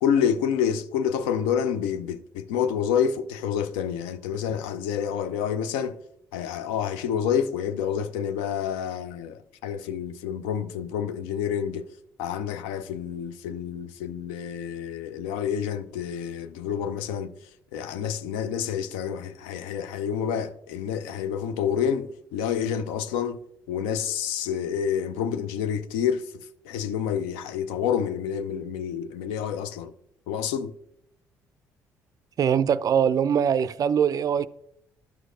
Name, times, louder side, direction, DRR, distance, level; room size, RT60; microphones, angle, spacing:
voice 1, 0.0-6.0 6.3-11.9 12.2-17.3 17.7-23.4 23.7-26.3 26.6-29.9 30.3-30.7, left 8 dB, 70° left, 0.4 m, -28 dB
voice 2, 32.4-34.5, right 8 dB, 45° right, 0.3 m, -22 dB
11.5 x 6.2 x 2.5 m
hypercardioid pair, 50°, 9 cm